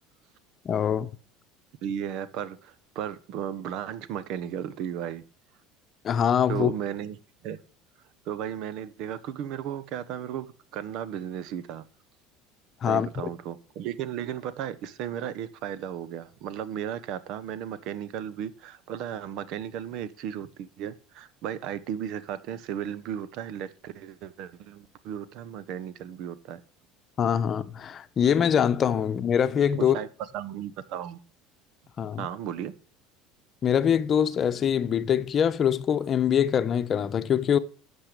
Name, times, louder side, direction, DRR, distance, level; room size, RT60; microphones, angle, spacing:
voice 1, 0.6-1.1 6.0-6.7 12.8-13.1 27.2-30.0 32.0-32.3 33.6-37.6, left 8 dB, 40° left, 0.9 m, -24 dB
voice 2, 1.8-5.2 6.5-7.2 7.4-7.6 8.2-11.8 12.9-26.6 29.7-30.1 30.3-31.2 32.2-32.7, right 9 dB, 65° right, 1.1 m, -35 dB
12.0 x 7.6 x 5.1 m
hypercardioid pair, 85°, 0 cm